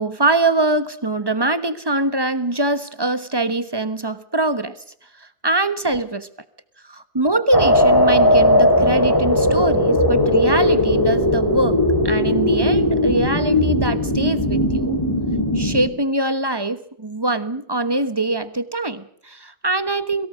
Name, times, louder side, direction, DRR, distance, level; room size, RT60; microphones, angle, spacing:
voice 1, 0.0-4.7 5.2-6.3 6.9-15.0 15.5-20.3, right 2 dB, 15° right, 13 dB, 1.0 m, -23 dB
sound 1, 7.5-15.9, left 1 dB, 15° left, 3.2 m, -18 dB
22.5 x 18.0 x 6.4 m, 0.66 s
omnidirectional pair, 1.7 m